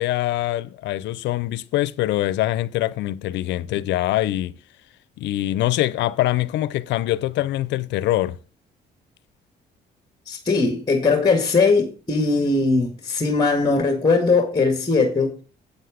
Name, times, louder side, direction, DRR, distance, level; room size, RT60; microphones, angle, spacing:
voice 1, 0.0-4.6 5.2-8.4, left 15 dB, 85° left, 0.6 m, -24 dB
voice 2, 10.3-15.4, left 4 dB, 25° left, 1.8 m, -20 dB
8.4 x 7.9 x 5.0 m
cardioid pair, 90°, 18 cm